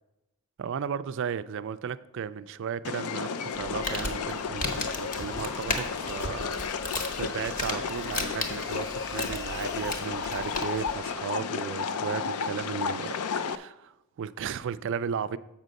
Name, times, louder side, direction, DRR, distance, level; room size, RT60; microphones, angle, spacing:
voice 1, 0.6-6.6 7.2-13.9 14.2-15.4, right 7 dB, 55° right, 0.3 m, -35 dB
sound 1, 2.8-13.6, left 6 dB, 75° left, 0.4 m, -33 dB
Crumpling crinkling, 3.5-11.0, left 2 dB, 35° left, 1.1 m, -36 dB
sound 2, 4.1-11.5, left 1 dB, 15° left, 0.6 m, -48 dB
7.3 x 5.3 x 6.3 m
head